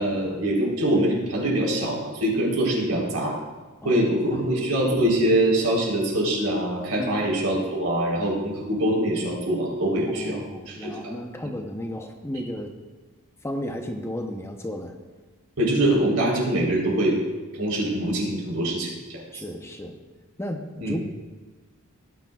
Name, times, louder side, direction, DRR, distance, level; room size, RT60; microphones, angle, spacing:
voice 1, 0.0-3.4 3.8-10.4 10.7-11.1 15.6-17.2 17.5-19.4 20.8-21.0, right 1 dB, 80° right, -2 dB, 3.6 m, -24 dB
voice 2, 10.1-12.7 13.4-15.0 19.3-19.9 20.4-21.0, equal, 10° left, 4 dB, 0.7 m, -33 dB
18.0 x 9.6 x 2.3 m, 1.3 s
head